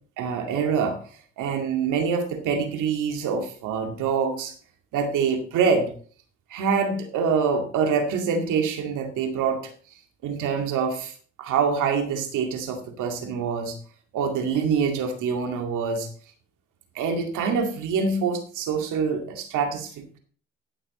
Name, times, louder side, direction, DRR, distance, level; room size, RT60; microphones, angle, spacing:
voice 1, 0.2-1.0 1.4-4.5 4.9-5.9 6.5-9.7 10.2-11.1 11.4-13.8 14.1-16.1 17.0-20.2, right 5 dB, 90° right, 5 dB, 2.2 m, -25 dB
14.5 x 7.2 x 4.2 m, 0.43 s
cardioid pair, 90°, 30 cm